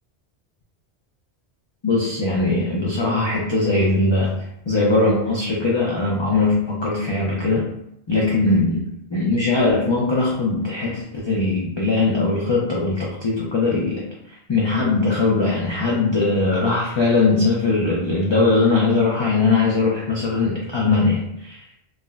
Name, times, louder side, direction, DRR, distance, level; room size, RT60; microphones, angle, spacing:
voice 1, 1.8-4.4 4.7-7.6 8.1-8.8 9.1-14.0 14.3-21.6, left 3 dB, 45° left, -4 dB, 0.3 m, -20 dB
3.4 x 2.0 x 2.3 m, 0.77 s
omnidirectional pair, 1.1 m